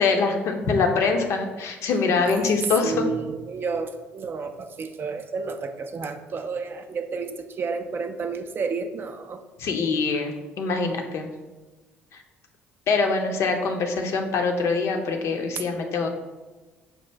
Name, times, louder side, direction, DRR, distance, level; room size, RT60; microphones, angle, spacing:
voice 1, 0.0-2.9 9.6-11.3 12.9-16.1, left 4 dB, 55° left, 4 dB, 0.6 m, -24 dB
voice 2, 2.3-9.4, right 4 dB, 40° right, 7 dB, 0.4 m, -31 dB
5.6 x 2.5 x 3.2 m, 1.2 s
figure-of-eight pair, 50°, 6 cm